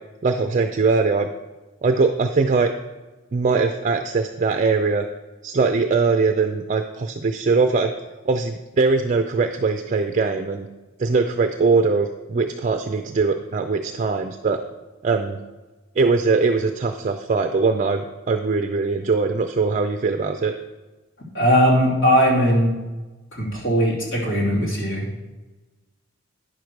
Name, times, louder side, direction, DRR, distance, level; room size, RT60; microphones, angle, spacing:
voice 1, 0.2-1.3 1.8-2.7 3.3-5.1 5.4-7.9 8.2-10.7 11.0-14.6 15.0-15.4 16.0-18.0 18.3-20.5, right 4 dB, 40° right, 6 dB, 0.4 m, -21 dB
voice 2, 21.3-22.7 23.3-25.2, equal, 80° left, -4 dB, 2.9 m, -19 dB
9.4 x 6.7 x 4.6 m, 1.2 s
head